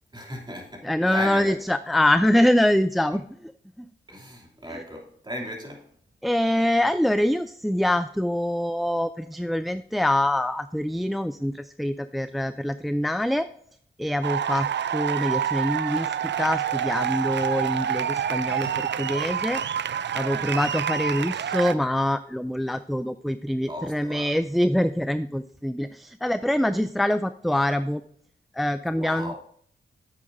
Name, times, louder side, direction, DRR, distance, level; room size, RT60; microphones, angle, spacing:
voice 1, 0.1-1.6 4.1-5.9 23.7-24.4 28.9-29.4, equal, 20° right, 2.8 m, -36 dB
voice 2, 0.8-3.2 3.8-3.9 6.2-13.5 14.0-19.6 20.1-28.0 28.5-29.4, left 1 dB, ahead, 0.3 m, -24 dB
sound 1, 14.2-21.8, right 9 dB, 65° right, 0.4 m, -27 dB
10.0 x 8.3 x 2.7 m
cardioid pair, 55°, 20 cm